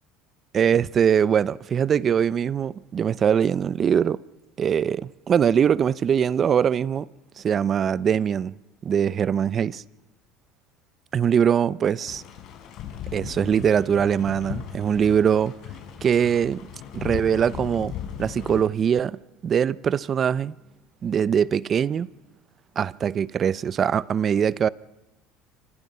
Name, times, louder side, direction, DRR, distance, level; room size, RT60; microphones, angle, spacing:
voice 1, 0.5-4.2 4.6-7.1 7.4-8.6 8.8-9.8 11.1-12.2 13.1-15.5 16.0-16.7 16.9-20.5 21.0-22.1 22.8-24.7, right 8 dB, 35° right, 0.7 m, -22 dB
sound 1, 12.1-18.6, left 9 dB, 60° left, 5.7 m, -37 dB
27.5 x 25.5 x 5.7 m
supercardioid pair, 110°, 0 cm